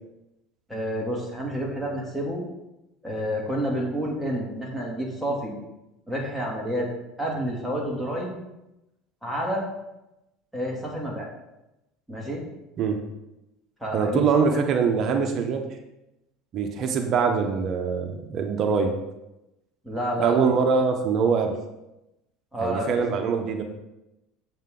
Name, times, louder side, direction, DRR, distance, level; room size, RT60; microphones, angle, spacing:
voice 1, 0.7-2.4 3.0-5.5 6.1-6.9 7.2-8.3 9.2-9.7 10.5-11.3 12.1-12.4 13.8-14.6 19.8-20.5 22.5-23.0, equal, ahead, -3 dB, 2.5 m, -29 dB
voice 2, 13.9-15.7 16.5-19.0 20.2-21.6 22.6-23.6, right 5 dB, 45° right, 5 dB, 1.0 m, -23 dB
7.7 x 7.6 x 3.9 m, 0.92 s
supercardioid pair, 120°, 0 cm